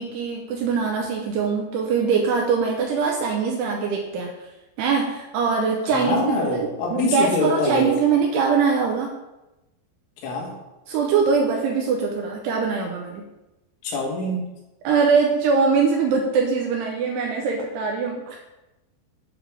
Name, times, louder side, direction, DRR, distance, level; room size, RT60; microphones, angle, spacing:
voice 1, 0.0-4.5 4.8-6.4 6.9-9.2 10.9-13.2 14.8-18.4, right 5 dB, 80° right, 1 dB, 2.5 m, -22 dB
voice 2, 5.9-8.0 10.2-10.5 13.8-14.5, left 3 dB, 85° left, -3 dB, 4.1 m, -25 dB
9.3 x 3.4 x 6.1 m, 0.99 s
omnidirectional pair, 5.4 m